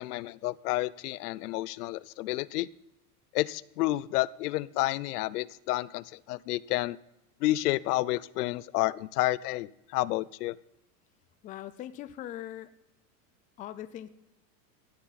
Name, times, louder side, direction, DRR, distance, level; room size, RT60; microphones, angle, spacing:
voice 1, 0.0-2.7 3.3-7.0 7.4-10.6, left 17 dB, 90° left, 20 dB, 0.6 m, -30 dB
voice 2, 11.4-12.7 13.6-14.1, left 12 dB, 20° left, 13 dB, 0.4 m, -41 dB
16.0 x 9.7 x 4.1 m, 0.89 s
supercardioid pair, 145°, 44 cm